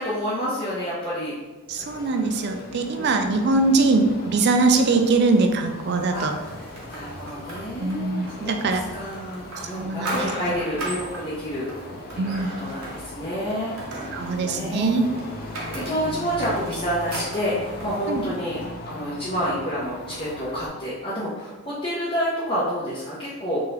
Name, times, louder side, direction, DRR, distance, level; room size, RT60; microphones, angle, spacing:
voice 1, 0.0-1.3 3.0-3.6 6.1-6.3 6.9-11.7 12.1-13.7 14.0-15.0 15.7-18.6 18.8-23.6, equal, 25° left, -11 dB, 0.8 m, -29 dB
sound 1, 1.7-20.7, left 2 dB, 45° left, 0.4 m, -39 dB
voice 2, 1.7-6.3 7.8-8.8 9.6-10.2 12.2-12.5 14.1-15.0 18.1-18.2, right 3 dB, 50° right, 5 dB, 0.4 m, -22 dB
sound 2, 6.4-18.7, right 2 dB, 70° right, 1.0 m, -38 dB
3.6 x 2.9 x 3.2 m, 1.2 s
head